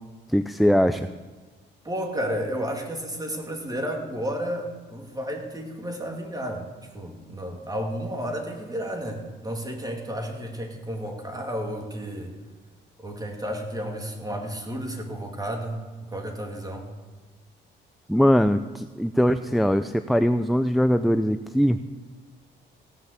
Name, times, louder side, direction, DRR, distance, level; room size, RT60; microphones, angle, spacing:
voice 1, 0.3-1.1 18.1-21.8, equal, ahead, 10 dB, 0.5 m, -21 dB
voice 2, 1.8-12.4 13.0-16.9, equal, 20° right, 2 dB, 2.8 m, -32 dB
17.0 x 5.8 x 8.3 m, 1.3 s
cardioid pair, 90°, 20 cm